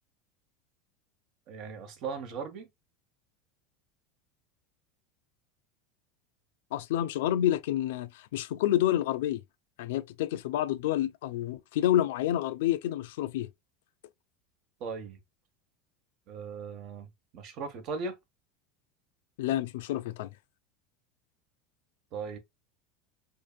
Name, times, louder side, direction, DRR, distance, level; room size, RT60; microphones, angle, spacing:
voice 1, 1.5-2.7 14.8-15.2 16.3-18.2 22.1-22.4, right 5 dB, 50° right, 0.7 m, -38 dB
voice 2, 6.7-9.4 9.8-13.5 19.4-20.3, left 12 dB, 80° left, 0.3 m, -28 dB
2.6 x 2.5 x 2.3 m
supercardioid pair, 125°, 0 cm